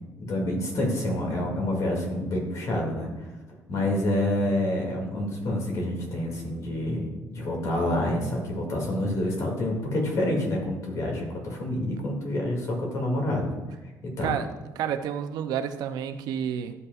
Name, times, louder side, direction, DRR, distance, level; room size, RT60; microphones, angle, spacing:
voice 1, 0.2-3.3 3.7-13.6 14.2-14.4, left 1 dB, 55° left, -1 dB, 2.3 m, -28 dB
voice 2, 14.8-16.7, right 8 dB, 80° right, 8 dB, 0.6 m, -30 dB
12.0 x 5.3 x 2.4 m, 1.1 s
cardioid pair, 125°, 7 cm